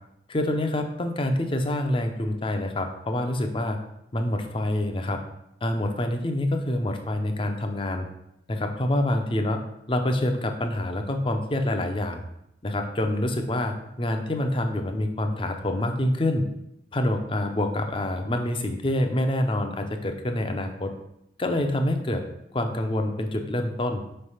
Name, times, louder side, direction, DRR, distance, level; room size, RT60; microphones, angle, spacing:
voice 1, 0.3-3.8 4.1-5.2 5.6-8.1 8.5-9.6 9.9-12.2 12.6-16.4 16.9-20.9 21.4-22.2 22.5-24.0, left 1 dB, 30° left, 5 dB, 0.6 m, -26 dB
5.3 x 3.3 x 5.6 m, 0.79 s
head